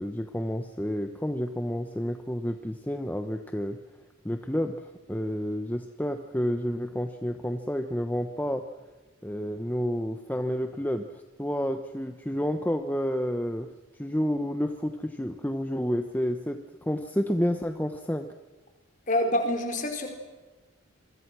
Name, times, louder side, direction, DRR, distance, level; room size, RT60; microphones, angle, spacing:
voice 1, 0.0-3.8 4.2-8.6 9.2-11.1 11.4-13.7 13.9-18.3, equal, 10° left, 6 dB, 1.0 m, -30 dB
voice 2, 19.1-20.1, left 1 dB, 35° left, 4 dB, 4.8 m, -26 dB
27.5 x 23.5 x 6.3 m, 1.2 s
head